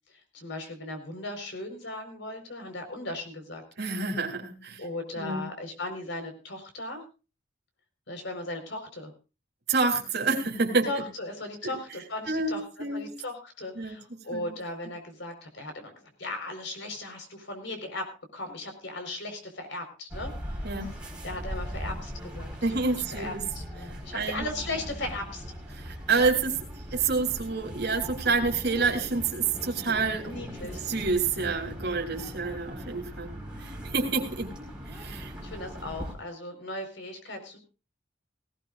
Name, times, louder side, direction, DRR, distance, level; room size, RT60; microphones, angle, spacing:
voice 1, 0.1-3.6 4.8-7.0 8.1-9.1 10.9-12.6 12.9-20.7 21.2-22.5 22.9-25.4 30.3-30.9 35.4-37.6, left 2 dB, 65° left, 5 dB, 4.6 m, -37 dB
voice 2, 3.8-4.8 5.2-5.4 9.7-10.9 11.6-11.7 12.2-13.1 13.8-14.0 14.3-14.4 20.6-20.9 22.6-23.4 24.1-24.4 25.7-26.6 26.9-30.3 30.9-33.3 33.6-34.5 34.9-35.3, right 4 dB, 60° right, 1 dB, 3.6 m, -28 dB
sound 1, 20.1-36.1, equal, 5° right, 4.9 m, -39 dB
19.0 x 17.5 x 2.5 m, 0.33 s
head